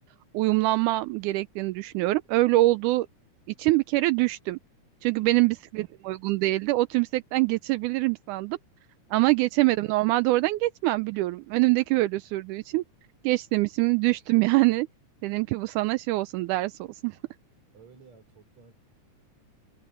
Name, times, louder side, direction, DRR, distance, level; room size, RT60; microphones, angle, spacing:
voice 1, 0.3-3.1 3.6-4.6 5.0-8.6 9.1-12.8 13.2-14.9 15.2-17.2, right 19 dB, 80° right, 2.0 m, -24 dB
voice 2, 5.0-5.5 17.7-18.7, right 4 dB, 60° right, 5.6 m, -54 dB
omnidirectional pair, 3.6 m